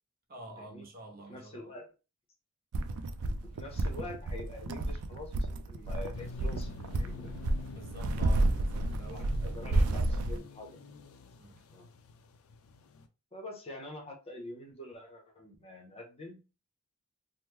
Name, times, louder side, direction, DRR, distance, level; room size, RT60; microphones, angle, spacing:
voice 1, 0.3-1.7 7.7-10.4 11.4-11.7, right 1 dB, 40° right, 0.8 m, -48 dB
voice 2, 1.3-1.9 3.2-7.3 9.1-10.8 11.7-11.9 13.3-16.4, left 1 dB, 25° left, 0.7 m, -46 dB
sound 1, 2.7-10.4, right 2 dB, 80° right, 0.4 m, -31 dB
sound 2, 6.1-13.1, left 5 dB, 65° left, 0.4 m, -49 dB
3.0 x 2.0 x 3.5 m
head